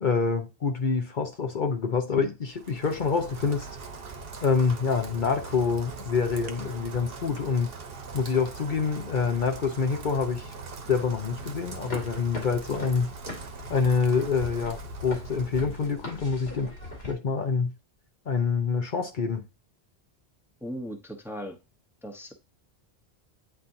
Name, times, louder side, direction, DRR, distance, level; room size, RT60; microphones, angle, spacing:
voice 1, 0.0-3.7 4.4-7.7 8.1-10.5 10.9-13.1 13.7-16.7 17.1-17.7 18.3-19.4, left 5 dB, 55° left, 0.9 m, -26 dB
Rain, 2.4-16.3, right 4 dB, 65° right, 1.2 m, -41 dB
sound 1, 11.7-17.1, left 1 dB, 80° left, 2.6 m, -41 dB
voice 2, 20.6-21.6 22.0-22.3, equal, ahead, 0.9 m, -37 dB
9.0 x 4.2 x 2.6 m
omnidirectional pair, 1.0 m